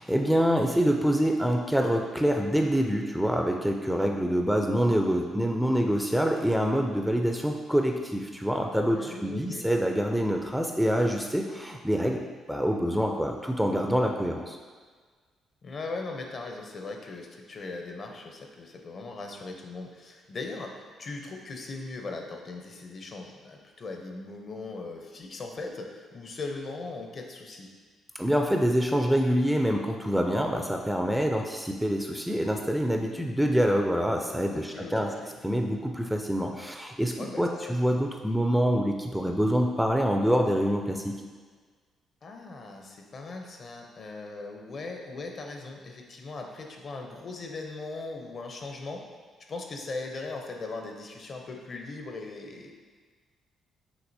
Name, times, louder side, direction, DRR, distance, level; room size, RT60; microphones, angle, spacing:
voice 1, 0.0-14.6 28.2-35.1 35.4-41.2, equal, ahead, 2 dB, 0.4 m, -26 dB
voice 2, 9.0-9.7 15.6-27.7 34.5-35.3 37.2-37.8 42.2-49.0 49.5-52.7, left 3 dB, 50° left, 2 dB, 0.6 m, -39 dB
6.0 x 2.8 x 2.7 m, 1.5 s
cardioid pair, 90°, 0 cm